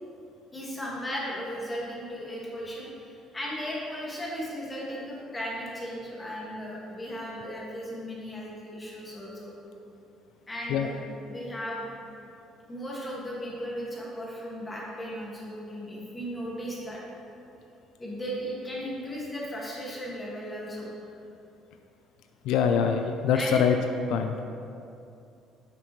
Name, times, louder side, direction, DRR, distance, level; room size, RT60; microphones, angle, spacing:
voice 1, 0.5-9.5 10.5-11.0 11.3-11.9 12.7-17.0 18.0-21.0 23.3-23.6, equal, 15° left, -4 dB, 1.9 m, -36 dB
voice 2, 22.5-23.7 24.1-24.4, left 7 dB, 80° left, 6 dB, 0.4 m, -24 dB
10.0 x 5.9 x 3.1 m, 2.6 s
cardioid pair, 125°, 0 cm